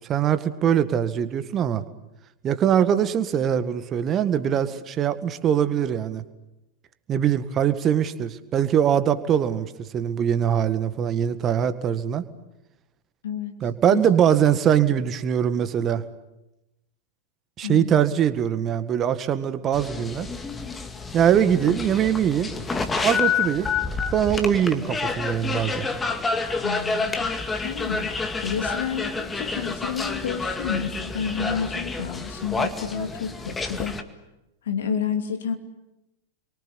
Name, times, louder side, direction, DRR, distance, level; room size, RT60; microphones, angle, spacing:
voice 1, 0.1-1.8 2.4-6.2 7.1-9.7 9.9-12.2 13.6-16.0 17.6-20.3 21.1-22.5 23.0-23.7 24.1-25.9, right 9 dB, 30° right, 12 dB, 1.7 m, -22 dB
voice 2, 13.2-13.6 13.9-14.1 17.6-18.0 26.6-27.3 27.6-34.0 34.6-35.5, left 7 dB, 60° left, 5 dB, 2.9 m, -30 dB
sound 1, 19.7-34.0, left 4 dB, 15° left, 2.1 m, -29 dB
30.0 x 23.5 x 8.4 m, 0.95 s
figure-of-eight pair, 90°, 0 cm